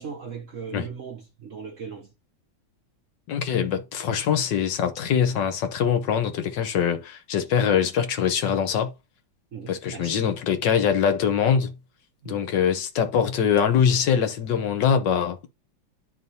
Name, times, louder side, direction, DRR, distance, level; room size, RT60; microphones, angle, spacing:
voice 1, 0.0-2.1 9.5-10.2 12.2-12.5, right 6 dB, 60° right, 0.8 m, -38 dB
voice 2, 3.3-8.9 9.7-11.7 12.3-15.5, left 8 dB, 70° left, 1.5 m, -23 dB
10.5 x 3.6 x 2.7 m
omnidirectional pair, 2.1 m